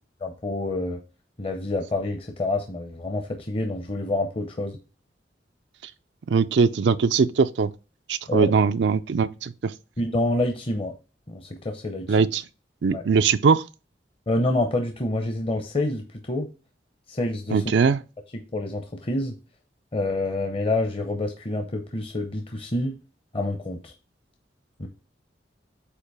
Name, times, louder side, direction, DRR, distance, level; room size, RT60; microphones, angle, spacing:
voice 1, 0.2-1.0 1.4-4.8 8.3-8.5 10.0-10.9 11.3-12.2 12.9-13.0 14.3-16.5 17.1-17.6 18.3-19.3 19.9-23.0 23.3-23.9 24.8-24.9, left 2 dB, 30° left, 0.7 m, -27 dB
voice 2, 6.3-7.7 8.1-9.7 12.1-12.4 12.8-13.6 17.5-18.0, right 5 dB, 80° right, 0.4 m, -21 dB
8.3 x 2.9 x 4.8 m
head